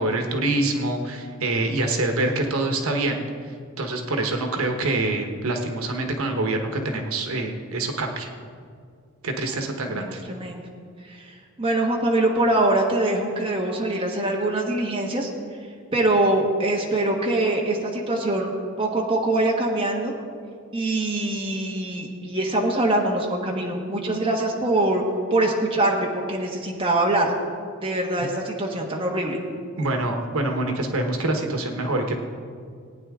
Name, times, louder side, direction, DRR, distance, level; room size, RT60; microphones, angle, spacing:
voice 1, 0.0-3.2 3.8-8.3 9.2-10.2 29.8-32.1, right 2 dB, 85° right, 4 dB, 1.2 m, -25 dB
voice 2, 9.9-10.6 11.0-15.3 15.9-20.1 20.7-25.0 25.3-27.3 27.8-29.4, right 2 dB, 25° right, -1 dB, 1.3 m, -23 dB
19.0 x 9.2 x 3.7 m, 2.2 s
head